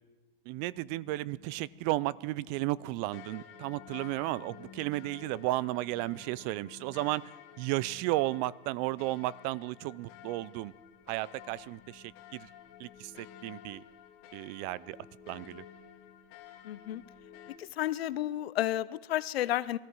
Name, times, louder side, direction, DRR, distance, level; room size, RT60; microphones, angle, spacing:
sound 1, 0.5-17.6, left 9 dB, 45° left, 1.8 m, -52 dB
voice 1, 0.5-7.2 7.6-10.7 11.1-12.0 12.3-12.5 12.8-13.8 14.3-15.0 15.3-15.6, right 18 dB, 45° right, 23 dB, 0.4 m, -33 dB
voice 2, 16.6-17.0 17.6-19.8, left 13 dB, 90° left, 17 dB, 0.7 m, -32 dB
21.0 x 13.5 x 4.7 m, 1.2 s
supercardioid pair, 130°, 30 cm